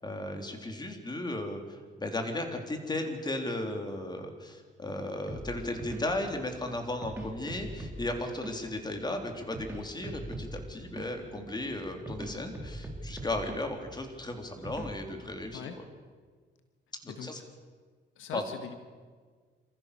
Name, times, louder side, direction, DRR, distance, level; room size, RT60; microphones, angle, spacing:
voice 1, 0.0-15.6 17.0-17.4 18.3-18.4, left 1 dB, 20° left, 4 dB, 3.7 m, -35 dB
sound 1, 5.3-15.4, right 1 dB, 10° right, 3.3 m, -43 dB
voice 2, 17.1-17.5 18.2-18.8, left 7 dB, 90° left, 7 dB, 1.8 m, -41 dB
28.0 x 14.5 x 6.9 m, 1.5 s
cardioid pair, 90°, 20 cm